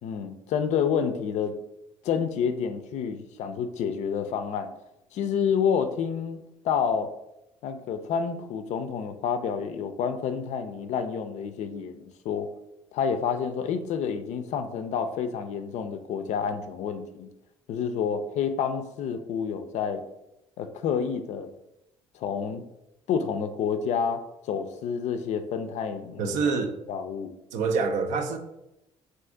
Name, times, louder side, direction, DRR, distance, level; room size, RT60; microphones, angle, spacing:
voice 1, 0.0-1.5 2.0-4.7 5.1-7.1 7.6-12.5 12.9-17.3 17.7-20.0 20.6-21.5 22.1-22.7 23.1-26.4 26.9-27.3, left 7 dB, 60° left, 9 dB, 0.4 m, -29 dB
voice 2, 26.2-26.8 27.5-28.4, right 5 dB, 70° right, 7 dB, 0.4 m, -26 dB
2.5 x 2.4 x 3.7 m, 0.88 s
supercardioid pair, 65°, 13 cm